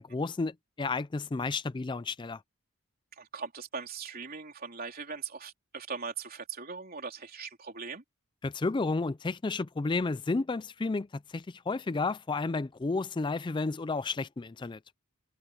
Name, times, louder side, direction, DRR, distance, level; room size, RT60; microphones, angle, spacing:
voice 1, 0.0-2.4 8.4-14.8, left 3 dB, 20° left, 0.4 m, -32 dB
voice 2, 3.1-8.0, right 5 dB, 45° right, 3.6 m, -40 dB
head